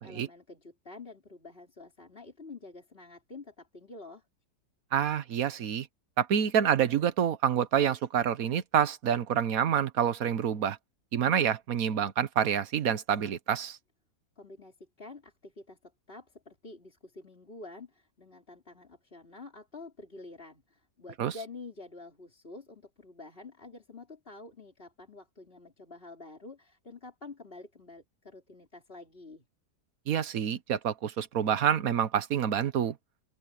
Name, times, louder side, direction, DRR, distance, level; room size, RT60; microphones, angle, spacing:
voice 1, 0.0-4.2 14.4-29.4, left 3 dB, 35° left, 3.8 m, -48 dB
voice 2, 4.9-5.9 6.2-10.8 11.1-13.8 21.2-21.3 30.1-32.9, right 8 dB, 60° right, 1.3 m, -27 dB
open air
omnidirectional pair, 1.8 m